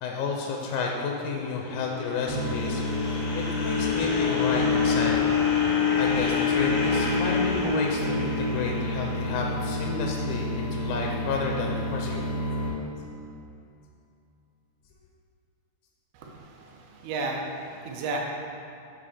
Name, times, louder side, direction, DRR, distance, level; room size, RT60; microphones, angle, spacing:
voice 1, 0.0-5.3 5.7-12.4, left 4 dB, 85° left, 0 dB, 2.1 m, -31 dB
sound 1, 1.5-9.7, left 6 dB, 60° left, 1.9 m, -26 dB
sound 2, 2.3-12.7, equal, 60° right, 2.4 m, -31 dB
voice 2, 16.1-18.2, right 3 dB, 85° right, 0 dB, 2.3 m, -33 dB
7.8 x 5.4 x 4.2 m, 2.6 s
omnidirectional pair, 3.5 m